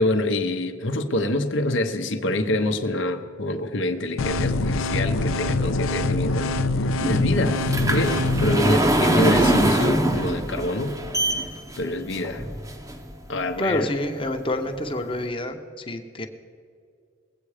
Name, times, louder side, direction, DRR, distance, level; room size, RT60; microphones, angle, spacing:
voice 1, 0.0-6.5 6.8-7.6 7.9-11.0 11.8-12.4 13.3-13.9, left 1 dB, 60° left, 6 dB, 0.9 m, -26 dB
sound 1, 4.2-8.6, left 2 dB, 80° left, 0.6 m, -24 dB
sound 2, 7.0-13.1 13.7-13.8 14.4-14.5 14.8-14.9, right 1 dB, 15° right, 0.8 m, -23 dB
voice 2, 13.6-16.3, left 1 dB, 25° left, 6 dB, 1.0 m, -28 dB
21.0 x 8.4 x 4.9 m, 2.3 s
head